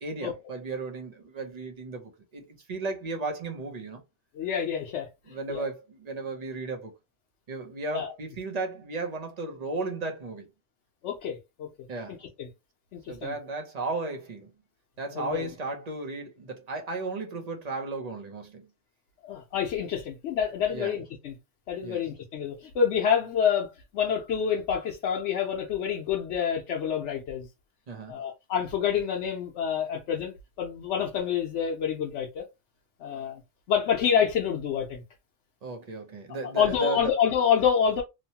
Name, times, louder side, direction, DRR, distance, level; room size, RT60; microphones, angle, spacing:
voice 1, 0.0-4.0 5.3-6.9 7.5-10.5 11.9-12.2 13.1-14.5 15.0-18.6 20.7-20.9 21.8-22.0 27.9-28.2 35.6-37.1, right 3 dB, 40° right, 0.7 m, -35 dB
voice 2, 4.3-5.6 7.9-8.1 11.0-11.7 12.2-12.5 12.9-13.3 15.1-15.5 19.2-21.3 21.7-23.7 23.9-27.5 28.1-32.4 33.0-33.4 33.7-35.0 36.6-38.0, left 8 dB, 85° left, 0.9 m, -27 dB
3.0 x 2.1 x 2.7 m
omnidirectional pair, 1.2 m